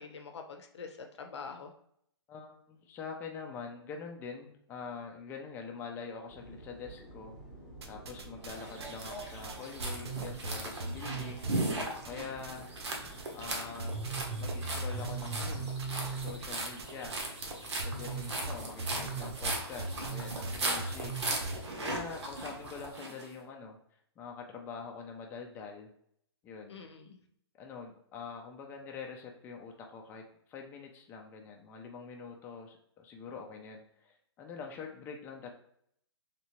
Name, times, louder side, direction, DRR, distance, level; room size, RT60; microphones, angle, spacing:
voice 1, 0.0-1.7 26.7-27.2, left 5 dB, 80° left, 4 dB, 0.7 m, -45 dB
voice 2, 2.3-7.4 7.9-11.5 12.0-12.7 13.3-14.0 14.4-17.2 17.8-21.4 21.8-23.8 24.2-25.9 26.4-26.8 27.5-35.5, left 5 dB, 15° left, 2 dB, 0.4 m, -45 dB
sound 1, 6.3-22.9, right 1 dB, 5° right, 0.8 m, -51 dB
sound 2, 7.8-8.5 8.8-12.5 12.8-13.5 13.8-21.6, right 3 dB, 65° right, 0.6 m, -38 dB
sound 3, 8.5-23.3, right 2 dB, 85° right, 1.1 m, -38 dB
3.2 x 2.7 x 3.0 m, 0.70 s
hypercardioid pair, 150°, 14 cm